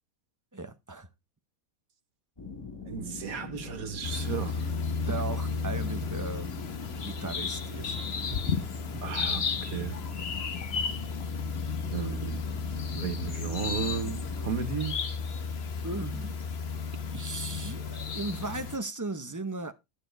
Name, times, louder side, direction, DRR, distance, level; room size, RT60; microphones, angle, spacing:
voice 1, 0.5-1.1 5.0-6.6 7.0-8.0 8.3-8.5 8.9-9.0 15.8-16.4 17.0-19.7, right 3 dB, 15° right, 0.8 m, -37 dB
sound 1, 2.4-14.5, left 4 dB, 15° left, 2.4 m, -43 dB
voice 2, 2.8-4.7 9.0-10.1 11.9-12.5 12.9-15.0, right 7 dB, 75° right, 1.8 m, -34 dB
sound 2, 4.0-18.8, left 5 dB, 50° left, 1.1 m, -33 dB
12.0 x 7.0 x 4.0 m
omnidirectional pair, 1.5 m